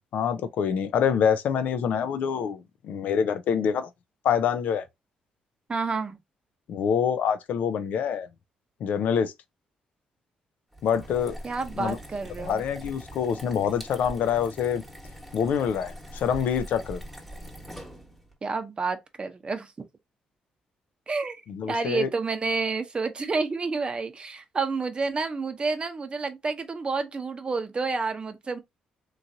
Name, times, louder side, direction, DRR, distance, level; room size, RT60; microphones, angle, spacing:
voice 1, 0.1-3.9 4.2-4.8 6.7-8.3 8.8-9.3 10.8-11.3 11.8-12.0 12.4-14.8 15.3-17.0 21.5-22.1, left 7 dB, 70° left, 0.5 m, -26 dB
voice 2, 5.7-6.2 11.4-12.6 18.4-19.7 21.1-28.6, right 4 dB, 35° right, 0.7 m, -29 dB
sound 1, 10.7-18.3, equal, 5° left, 1.3 m, -42 dB
3.0 x 2.5 x 2.7 m
supercardioid pair, 60°, 3 cm